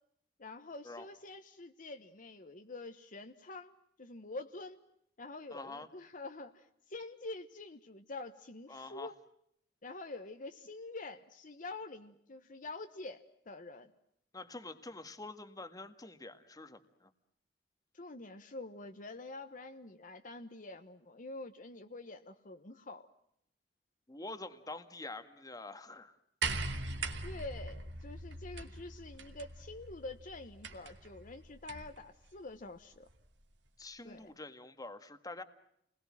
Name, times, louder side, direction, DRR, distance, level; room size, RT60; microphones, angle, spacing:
voice 1, 0.4-3.7 4.0-4.8 5.2-9.1 9.8-13.9 17.9-23.1 27.2-33.0 34.0-34.3, left 2 dB, 50° left, 7 dB, 1.2 m, -46 dB
voice 2, 5.5-5.9 8.7-9.1 14.3-17.1 24.1-26.1 33.8-35.4, left 2 dB, 20° left, 9 dB, 1.6 m, -46 dB
sound 1, 26.4-32.0 33.1-33.2, right 3 dB, 80° right, 2.6 m, -41 dB
30.0 x 21.0 x 7.5 m, 0.74 s
head